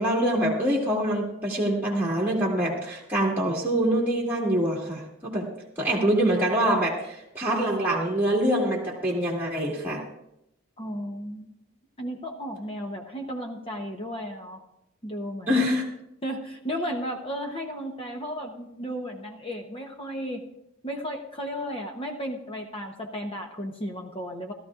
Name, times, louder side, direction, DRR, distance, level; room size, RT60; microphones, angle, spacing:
voice 1, 0.0-5.5 5.8-10.0 15.5-15.8, right 1 dB, 10° right, -5 dB, 1.7 m, -25 dB
voice 2, 10.8-11.5 12.0-14.6 15.0-15.6 16.2-20.4 20.8-24.5, equal, 25° left, 3 dB, 0.8 m, -34 dB
17.0 x 13.0 x 2.5 m, 0.82 s
head